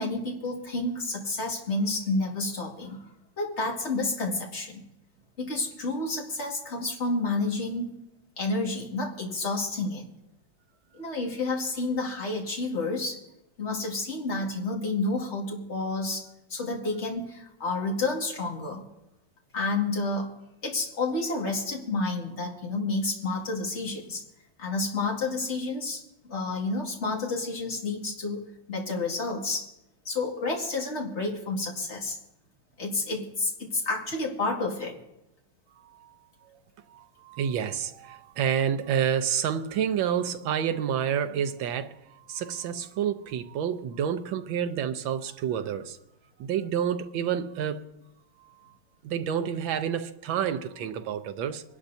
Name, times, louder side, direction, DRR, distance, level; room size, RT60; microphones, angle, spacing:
voice 1, 0.0-3.0 3.4-4.8 5.4-7.9 8.4-10.0 10.9-13.2 13.6-18.8 19.5-20.3 20.6-24.2 24.6-29.7 30.1-32.2 32.8-35.0, left 2 dB, 35° left, 2.2 m, -30 dB
voice 2, 36.4-46.0 46.4-47.8 48.4-48.7 49.0-51.6, right 8 dB, 75° right, 1.5 m, -29 dB
25.0 x 11.5 x 2.7 m
omnidirectional pair, 2.2 m